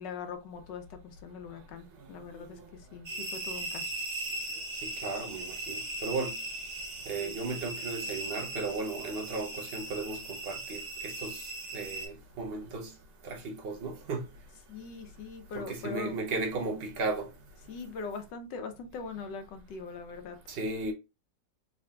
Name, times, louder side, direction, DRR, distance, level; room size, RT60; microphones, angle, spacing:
voice 1, 0.0-3.9 14.7-16.2 17.7-20.4, left 5 dB, 80° left, 1.4 m, -41 dB
sound 1, 3.0-12.1, right 2 dB, 45° right, 0.9 m, -38 dB
voice 2, 4.8-6.3 7.1-11.4 11.7-12.9 13.2-14.2 15.6-17.3 20.5-20.9, right 3 dB, 75° right, 0.5 m, -35 dB
3.6 x 3.4 x 2.2 m
omnidirectional pair, 1.9 m